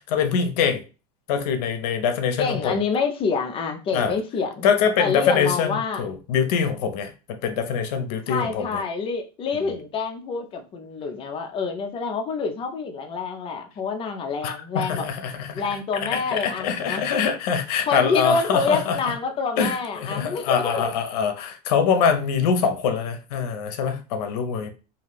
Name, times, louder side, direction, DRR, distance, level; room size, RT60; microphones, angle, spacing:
voice 1, 0.1-0.8 1.3-2.8 3.9-4.1 4.6-8.8 14.4-15.6 16.1-19.0 19.6-24.7, left 6 dB, 70° left, 0.7 m, -24 dB
voice 2, 2.4-4.7 5.0-6.0 8.3-15.1 15.5-17.0 17.8-20.8, left 5 dB, 25° left, 0.5 m, -27 dB
2.5 x 2.3 x 3.3 m
supercardioid pair, 130°, 21 cm